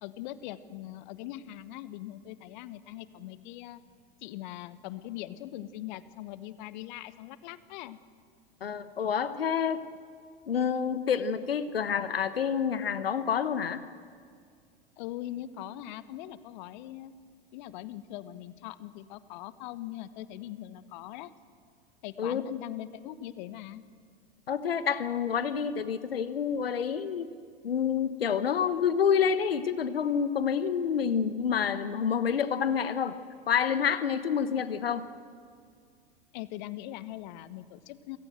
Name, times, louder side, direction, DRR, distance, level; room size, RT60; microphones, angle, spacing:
voice 1, 0.0-3.8 4.2-8.0 15.0-17.1 17.5-21.3 22.0-23.8 36.3-38.2, left 14 dB, 50° left, 15 dB, 1.2 m, -41 dB
voice 2, 8.6-9.8 10.5-13.8 22.2-22.4 24.5-27.3 27.6-33.2 33.5-35.1, left 7 dB, 75° left, 13 dB, 1.2 m, -28 dB
28.0 x 17.5 x 7.8 m, 2.1 s
figure-of-eight pair, 90°, 30 cm